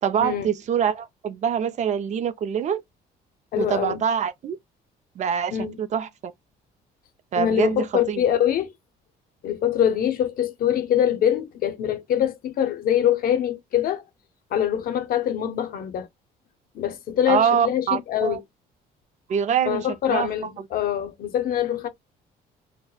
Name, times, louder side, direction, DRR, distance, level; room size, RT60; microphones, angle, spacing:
voice 1, 0.0-2.8 3.6-4.6 5.2-6.3 7.3-8.2 17.3-18.4 19.3-20.3, right 8 dB, 45° right, 0.4 m, -25 dB
voice 2, 3.5-4.0 5.5-5.8 7.4-8.7 9.4-14.0 14.5-16.1 16.7-18.4 19.6-21.9, left 10 dB, 60° left, 0.6 m, -24 dB
2.9 x 2.1 x 2.2 m
cardioid pair, 110°, 17 cm